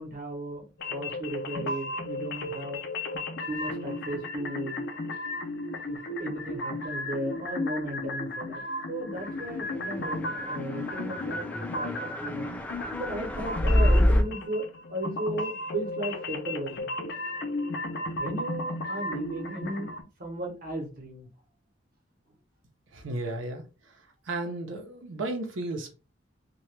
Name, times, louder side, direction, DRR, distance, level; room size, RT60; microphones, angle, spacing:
voice 1, 0.0-2.8 3.5-4.8 5.9-8.6 8.9-12.6 13.0-16.9 18.2-21.3, right 1 dB, 50° right, 0.9 m, -35 dB
sound 1, 0.8-20.0, left 2 dB, 60° left, 0.5 m, -34 dB
sound 2, 9.8-14.2, left 1 dB, 5° left, 0.3 m, -27 dB
voice 2, 22.9-23.9 24.3-25.9, right 2 dB, 85° right, 0.6 m, -34 dB
2.8 x 2.2 x 3.2 m
head